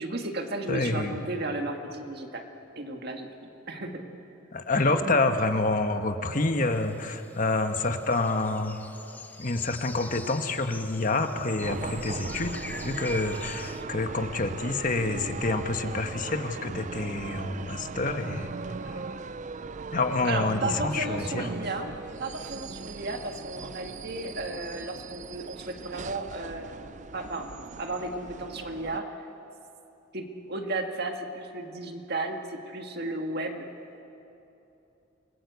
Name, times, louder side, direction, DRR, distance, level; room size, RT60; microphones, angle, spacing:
voice 1, 0.0-2.4 2.8-3.3 3.7-4.0 4.9-5.2 20.2-21.9 22.2-26.7 27.1-27.5 27.8-29.0 30.1-33.7, right 2 dB, 55° right, 3 dB, 2.0 m, -34 dB
voice 2, 0.7-1.2 4.5-8.8 9.4-18.5 19.9-21.5, left 2 dB, 40° left, 6 dB, 1.3 m, -28 dB
sound 1, 6.7-13.8, left 2 dB, 10° left, 0.8 m, -44 dB
sound 2, 11.6-29.0, right 4 dB, 40° right, 0.5 m, -39 dB
29.0 x 20.0 x 8.2 m, 2.9 s
head